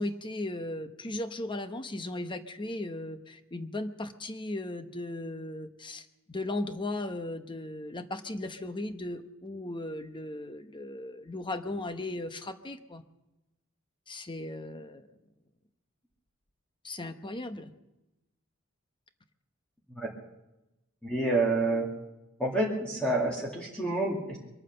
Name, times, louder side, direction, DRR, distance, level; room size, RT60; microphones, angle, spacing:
voice 1, 0.0-13.0 14.1-15.0 16.8-17.7, left 1 dB, 20° left, 9 dB, 0.9 m, -37 dB
voice 2, 21.0-21.9 22.4-24.4, right 2 dB, 5° left, -4 dB, 2.2 m, -28 dB
23.0 x 9.2 x 6.8 m, 0.98 s
head